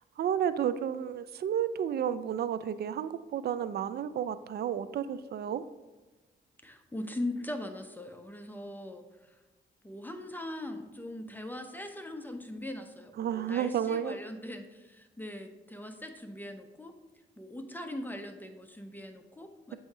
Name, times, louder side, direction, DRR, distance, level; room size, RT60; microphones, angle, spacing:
voice 1, 0.0-5.7 13.2-14.2, right 9 dB, 55° right, 14 dB, 0.4 m, -31 dB
voice 2, 6.6-9.4 9.8-17.0 17.4-19.8, left 1 dB, 10° left, 5 dB, 0.6 m, -40 dB
7.6 x 2.8 x 4.7 m, 1.2 s
cardioid pair, 75°, 19 cm